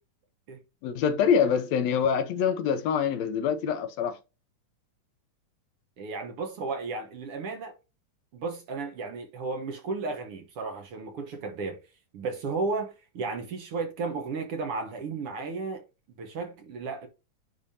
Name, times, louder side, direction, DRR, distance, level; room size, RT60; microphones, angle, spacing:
voice 1, 0.8-4.2, left 7 dB, 75° left, 1.6 m, -25 dB
voice 2, 6.0-7.7 8.3-11.8 12.1-15.8 16.2-17.1, right 4 dB, 65° right, 1.5 m, -34 dB
10.0 x 3.5 x 2.8 m
omnidirectional pair, 3.9 m